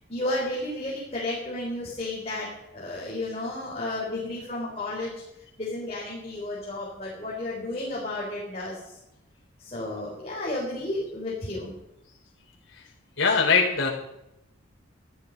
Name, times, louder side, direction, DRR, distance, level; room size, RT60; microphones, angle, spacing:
voice 1, 0.1-5.1 5.6-9.0 9.6-11.7, left 1 dB, 30° left, -6 dB, 4.2 m, -32 dB
voice 2, 13.2-13.9, left 5 dB, 75° left, -1 dB, 3.8 m, -21 dB
13.5 x 12.5 x 5.3 m, 0.86 s
head